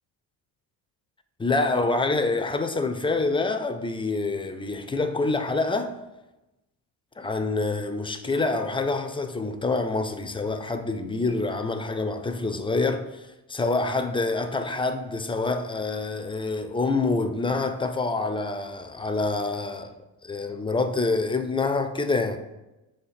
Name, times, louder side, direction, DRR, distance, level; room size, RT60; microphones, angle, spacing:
voice 1, 1.4-6.0 7.2-19.9 20.2-22.4, left 3 dB, 15° left, 0.4 m, -26 dB
5.2 x 4.2 x 5.6 m
cardioid pair, 110°, 42 cm